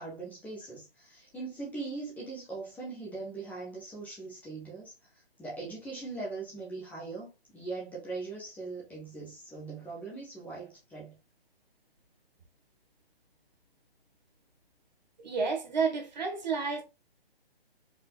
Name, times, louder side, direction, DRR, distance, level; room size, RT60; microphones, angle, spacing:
voice 1, 0.0-11.2, right 3 dB, 5° left, 0.9 m, -41 dB
voice 2, 15.2-16.8, right 5 dB, 45° right, 1.4 m, -30 dB
4.6 x 3.7 x 2.2 m
figure-of-eight pair, 135°, 30 cm